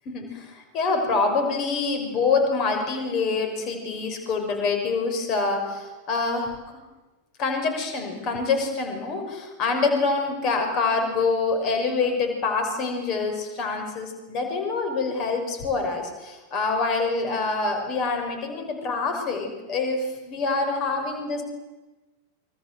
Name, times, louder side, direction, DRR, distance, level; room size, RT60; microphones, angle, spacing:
voice 1, 0.1-6.5 7.4-21.4, left 4 dB, 35° left, 5 dB, 6.2 m, -26 dB
29.0 x 25.0 x 7.9 m, 1.2 s
figure-of-eight pair, 90°, 0 cm